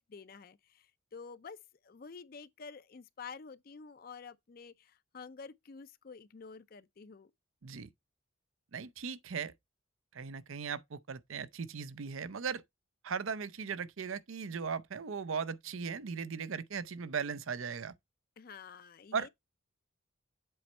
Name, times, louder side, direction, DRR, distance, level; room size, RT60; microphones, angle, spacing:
voice 1, 0.0-1.6 1.8-7.3 18.4-19.3, left 5 dB, 45° left, 0.4 m, -49 dB
voice 2, 8.7-9.5 10.1-12.6 13.0-17.9 19.1-19.3, right 6 dB, 75° right, 0.6 m, -38 dB
7.8 x 4.3 x 4.2 m
head